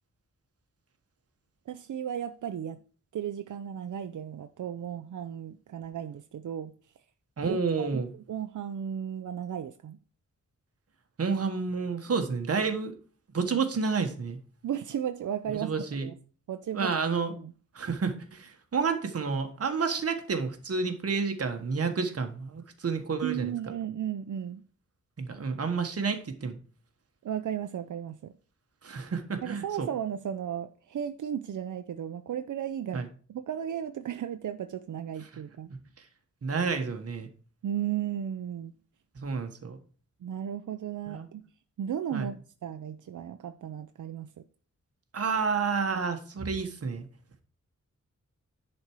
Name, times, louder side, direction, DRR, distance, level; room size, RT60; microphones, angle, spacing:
voice 1, 1.7-2.8 3.1-6.7 7.5-10.0 14.6-15.7 16.0-16.1 16.5-16.9 17.4-17.5 23.2-24.6 27.2-28.3 29.4-35.7 37.6-38.7 40.2-41.4 41.8-44.3, right 9 dB, 85° right, 0.6 m, -35 dB
voice 2, 7.4-8.1 11.2-12.9 13.3-14.4 15.5-16.1 16.7-17.3 17.7-23.5 25.2-26.6 28.8-29.9 32.9-33.1 36.0-36.1 36.4-37.3 39.1-39.8 41.1-41.3 42.1-42.3 45.1-47.1, right 5 dB, 55° right, 1.4 m, -30 dB
10.5 x 4.4 x 4.6 m
wide cardioid pair, 165°, 30 cm